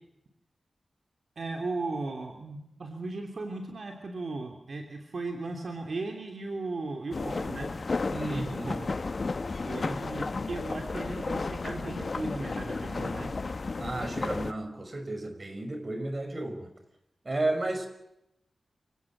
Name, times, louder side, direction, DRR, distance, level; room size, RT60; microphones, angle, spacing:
voice 1, 1.4-7.7 8.3-9.0 9.7-13.3, right 3 dB, 65° right, 4 dB, 3.1 m, -36 dB
sound 1, 7.1-14.5, left 3 dB, 50° left, 1.3 m, -33 dB
voice 2, 8.1-8.8 13.8-16.7 17.2-17.9, right 2 dB, 40° right, 7 dB, 5.5 m, -33 dB
28.5 x 17.5 x 7.4 m, 0.83 s
wide cardioid pair, 80°, 0 cm